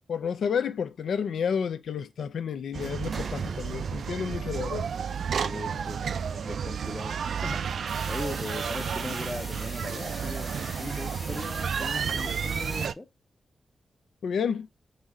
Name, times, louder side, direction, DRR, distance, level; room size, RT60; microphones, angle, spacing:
voice 1, 0.1-4.9 14.2-14.7, left 7 dB, 85° left, 0.4 m, -30 dB
sound 1, 2.7-12.9, right 7 dB, 70° right, 0.3 m, -32 dB
sound 2, 3.1-5.7, right 5 dB, 35° right, 0.7 m, -41 dB
voice 2, 5.3-13.1, left 1 dB, 15° left, 0.6 m, -39 dB
sound 3, 7.9-12.9, left 2 dB, 30° left, 1.4 m, -43 dB
4.0 x 3.1 x 3.6 m
wide cardioid pair, 135°, 0 cm